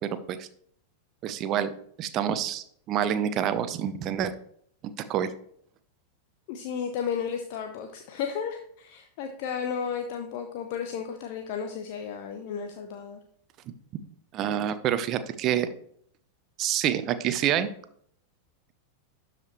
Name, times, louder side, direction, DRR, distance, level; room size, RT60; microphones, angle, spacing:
voice 1, 0.0-0.5 1.2-1.7 2.0-4.3 5.1-5.3 14.3-15.7 16.6-17.7, right 10 dB, 35° right, 12 dB, 0.7 m, -27 dB
voice 2, 6.5-13.2, left 7 dB, 45° left, 5 dB, 0.7 m, -33 dB
12.0 x 5.1 x 3.1 m, 0.64 s
figure-of-eight pair, 90°, 0 cm